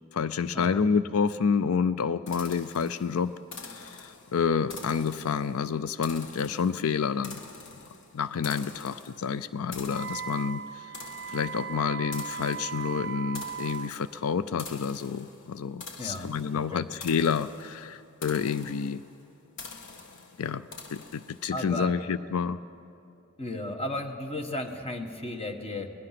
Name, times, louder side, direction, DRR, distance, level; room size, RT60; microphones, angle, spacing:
voice 1, 0.1-3.3 3.7-7.4 8.1-10.8 11.3-19.0 20.4-22.6, left 6 dB, 90° left, 15 dB, 0.5 m, -29 dB
sound 1, 2.3-21.6, left 4 dB, 60° left, 1.4 m, -46 dB
Wind instrument woodwind instrument, 9.9-13.9, right 7 dB, 55° right, 0.5 m, -37 dB
voice 2, 16.0-16.9 21.5-22.0 23.4-25.9, left 1 dB, 30° left, 6 dB, 1.3 m, -35 dB
24.5 x 19.0 x 5.9 m, 2.7 s
head